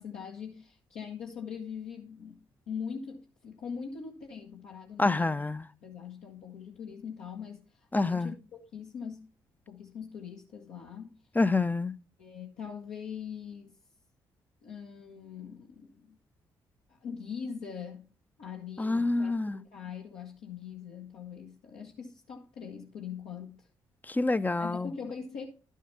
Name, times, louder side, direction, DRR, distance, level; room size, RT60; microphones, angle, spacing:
voice 1, 0.0-2.4 2.7-5.4 5.8-8.4 8.7-9.3 9.7-11.2 12.2-13.7 14.6-16.2 16.9-18.1 18.4-23.7 24.5-25.5, left 6 dB, 70° left, 1.4 m, -42 dB
voice 2, 5.0-5.7 7.9-8.3 11.4-11.9 18.8-19.6 24.1-24.9, left 3 dB, 15° left, 0.6 m, -27 dB
11.5 x 7.3 x 4.1 m
figure-of-eight pair, 40°, 11 cm